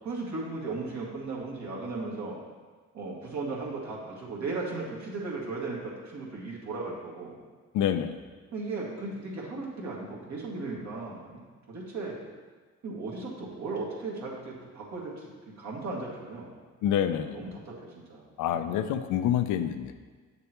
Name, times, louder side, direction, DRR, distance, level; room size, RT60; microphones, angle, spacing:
voice 1, 0.0-2.4 2.9-7.4 8.5-11.4 11.7-12.2 12.8-16.6 17.1-18.9, right 3 dB, 65° right, -4 dB, 2.1 m, -36 dB
voice 2, 7.7-8.2 16.8-17.4 18.4-19.9, left 10 dB, 85° left, 9 dB, 0.5 m, -27 dB
8.1 x 6.7 x 3.0 m, 1.5 s
cardioid pair, 90°, 30 cm